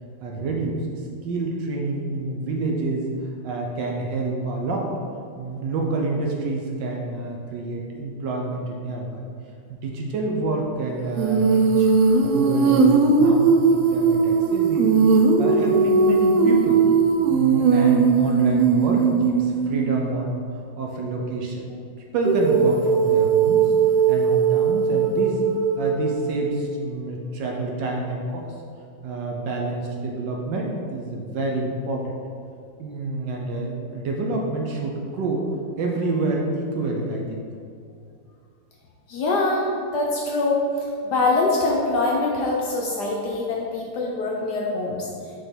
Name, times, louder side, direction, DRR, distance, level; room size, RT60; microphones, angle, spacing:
voice 1, 0.2-3.1 3.4-4.9 5.4-9.3 9.7-11.9 12.2-14.9 15.4-16.8 17.3-20.4 20.8-21.8 22.1-23.7 24.1-25.4 25.8-28.5 29.0-32.2 32.8-35.4 35.8-37.5, right 2 dB, 70° right, 0 dB, 1.2 m, -28 dB
Female singing, 11.2-20.0 22.2-26.5, right 5 dB, 90° right, 0.8 m, -19 dB
voice 2, 39.1-45.0, left 2 dB, 70° left, -2 dB, 1.0 m, -24 dB
4.9 x 4.5 x 4.4 m, 2.3 s
omnidirectional pair, 2.3 m